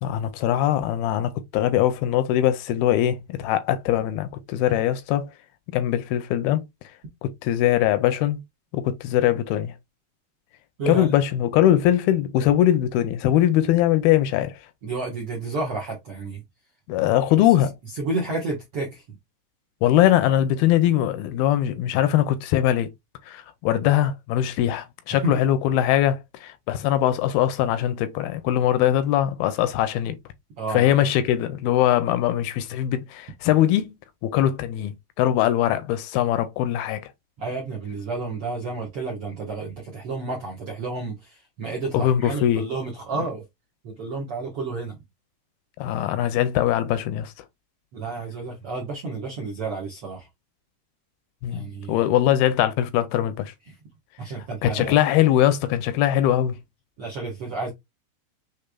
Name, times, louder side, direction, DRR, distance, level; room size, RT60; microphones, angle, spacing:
voice 1, 0.0-5.3 5.7-6.6 7.2-8.4 8.7-9.7 10.9-14.6 16.9-17.7 19.8-22.9 23.3-30.2 30.7-34.0 34.2-37.1 41.9-42.7 45.8-47.3 51.4-53.5 54.6-56.6, left 12 dB, 80° left, 2.3 m, -21 dB
voice 2, 10.8-11.1 14.8-16.4 17.5-17.6 17.9-19.0 25.2-25.4 30.6-30.9 37.4-43.4 43.8-45.0 47.9-50.3 51.5-52.0 53.7-53.8 54.2-54.9 57.0-57.7, right 3 dB, 70° right, 1.4 m, -31 dB
6.7 x 3.2 x 2.2 m
omnidirectional pair, 4.5 m